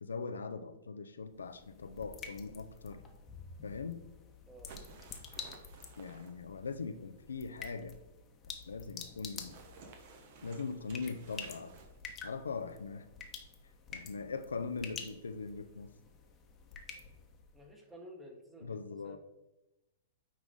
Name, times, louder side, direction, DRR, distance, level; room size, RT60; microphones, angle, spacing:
voice 1, 0.0-3.0 3.6-4.0 6.0-8.0 8.4-9.5 10.4-11.8 12.2-13.1 13.9-15.9 18.6-19.2, left 4 dB, 90° left, 9 dB, 0.5 m, -41 dB
sound 1, 1.2-17.7, left 6 dB, 25° left, 1.1 m, -49 dB
sound 2, 4.7-6.6 9.4-12.0, right 5 dB, 50° right, 1.1 m, -54 dB
voice 2, 17.5-19.2, equal, 10° right, 1 dB, 1.4 m, -52 dB
9.3 x 3.7 x 3.7 m, 0.94 s
hypercardioid pair, 125°, 0 cm